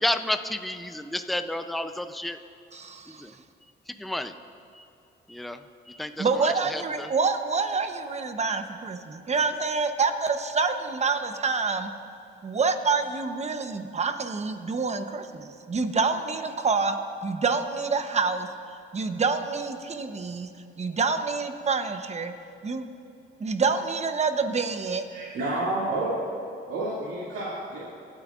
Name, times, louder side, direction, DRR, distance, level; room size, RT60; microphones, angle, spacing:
voice 1, 0.0-2.4 3.2-3.3 4.0-4.3 5.3-5.6 5.9-7.1, left 1 dB, ahead, 8 dB, 0.5 m, -31 dB
voice 2, 2.7-3.2 6.2-11.9 12.4-18.5 18.9-20.5 20.8-22.3 22.6-22.8 23.4-25.0, right 4 dB, 35° right, 7 dB, 0.9 m, -27 dB
voice 3, 25.1-26.2 26.7-27.9, right 2 dB, 75° right, -9 dB, 2.5 m, -29 dB
26.0 x 8.8 x 2.5 m, 2.6 s
cardioid pair, 90°, 20 cm